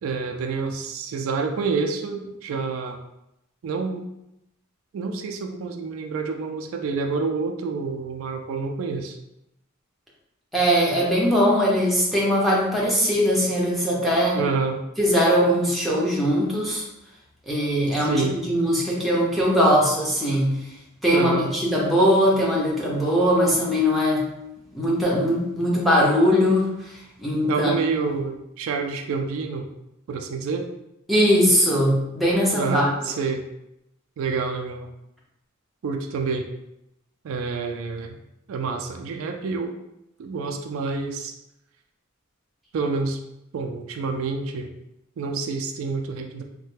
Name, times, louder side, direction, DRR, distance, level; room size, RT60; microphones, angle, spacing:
voice 1, 0.0-3.0 3.6-4.0 4.9-9.2 14.3-14.8 18.0-18.4 21.1-21.5 27.4-29.7 30.1-30.7 32.5-33.4 34.2-34.9 35.8-36.5 37.2-38.2 38.5-39.7 40.2-41.3 42.7-43.2 43.5-44.7 45.2-46.4, right 4 dB, 70° right, 4 dB, 0.3 m, -28 dB
voice 2, 10.5-14.4 15.0-16.8 17.5-20.6 21.0-24.2 24.7-26.7 27.2-27.7 28.0-28.1 31.1-32.8, equal, ahead, -5 dB, 0.6 m, -20 dB
3.1 x 2.1 x 3.2 m, 0.85 s
head